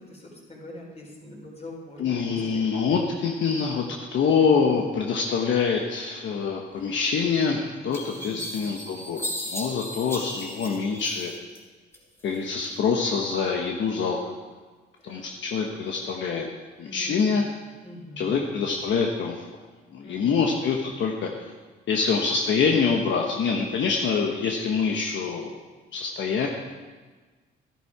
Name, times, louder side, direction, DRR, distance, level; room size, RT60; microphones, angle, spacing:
voice 1, 0.0-2.6 8.2-8.5 15.0-15.2 16.8-17.6 17.8-18.6 20.0-20.5, left 1 dB, 30° left, -2 dB, 4.5 m, -43 dB
voice 2, 2.0-3.8 4.1-11.3 12.2-14.2 15.0-16.5 16.8-17.4 18.2-19.4 19.9-21.3 21.9-25.6 25.9-26.5, left 5 dB, 70° left, 1 dB, 1.2 m, -25 dB
sound 1, 7.2-7.3 7.9-11.6 11.9-12.7, left 1 dB, 10° left, 3.3 m, -36 dB
12.5 x 11.0 x 4.9 m, 1.3 s
cardioid pair, 90°, 20 cm